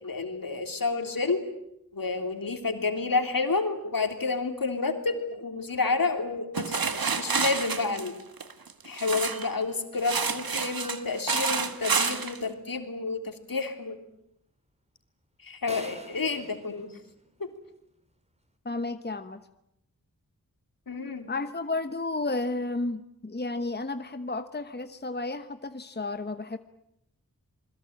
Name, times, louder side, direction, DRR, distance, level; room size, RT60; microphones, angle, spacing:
voice 1, 0.0-1.4 1.9-8.2 8.8-14.0 15.4-16.9 17.4-17.5 20.9-21.3, left 4 dB, 70° left, 6 dB, 3.3 m, -30 dB
sound 1, 6.5-9.5 10.0-12.4, right 5 dB, 75° right, 1.8 m, -29 dB
sound 2, 15.7-17.8, right 1 dB, 20° right, 3.1 m, -46 dB
voice 2, 18.6-19.4 21.3-26.6, left 2 dB, 30° left, 10 dB, 1.1 m, -32 dB
28.0 x 21.5 x 8.8 m, 0.79 s
wide cardioid pair, 75°, 35 cm